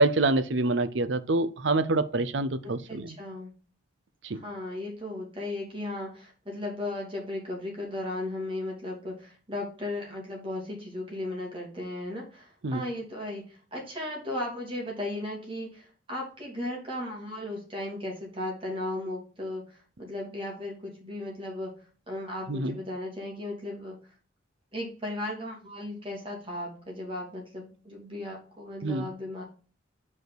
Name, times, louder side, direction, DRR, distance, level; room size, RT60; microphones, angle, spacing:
voice 1, 0.0-3.2 4.2-4.4 12.6-12.8 22.5-22.8 28.8-29.1, right 2 dB, 65° right, 0.6 m, -26 dB
voice 2, 2.9-3.5 4.3-21.7 22.1-24.0 24.7-29.4, left 1 dB, 25° right, 2.8 m, -36 dB
5.4 x 4.8 x 5.9 m
head